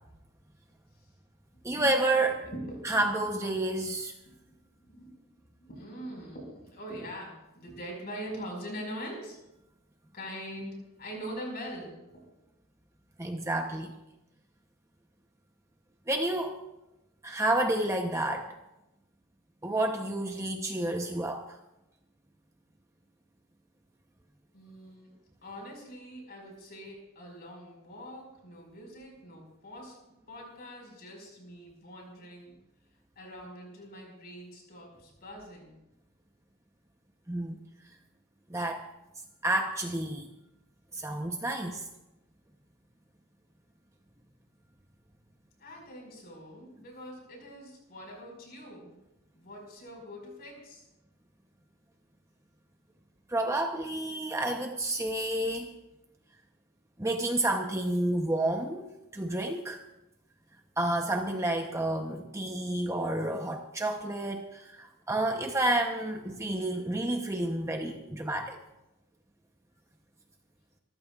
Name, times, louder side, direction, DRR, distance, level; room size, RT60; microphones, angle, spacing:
voice 1, 1.6-2.4 2.8-4.1 13.2-13.9 16.1-16.6 17.2-18.5 19.6-21.4 37.3-37.6 38.5-38.8 39.4-40.3 40.9-41.9 53.3-55.7 57.0-58.9 59.1-59.8 60.8-68.6, right 1 dB, 15° right, 3 dB, 0.8 m, -30 dB
voice 2, 2.4-3.0 4.8-5.1 5.4-9.4 10.1-12.3 24.5-25.1 25.4-32.5 33.2-35.8 45.6-49.0 49.3-50.9, equal, 45° left, 0 dB, 5.3 m, -43 dB
24.5 x 14.5 x 2.4 m, 0.94 s
head